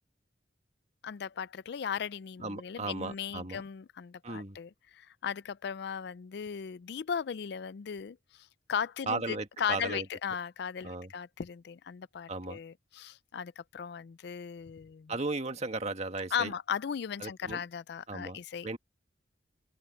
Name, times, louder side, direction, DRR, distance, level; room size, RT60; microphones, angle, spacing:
voice 1, 1.0-15.1 16.3-18.7, left 7 dB, 65° left, 0.4 m, -37 dB
voice 2, 2.4-3.6 4.2-4.6 9.1-10.1 10.8-11.1 12.3-12.6 15.1-16.5 17.2-17.6 18.1-18.4 18.6-18.8, right 3 dB, 40° right, 1.7 m, -36 dB
head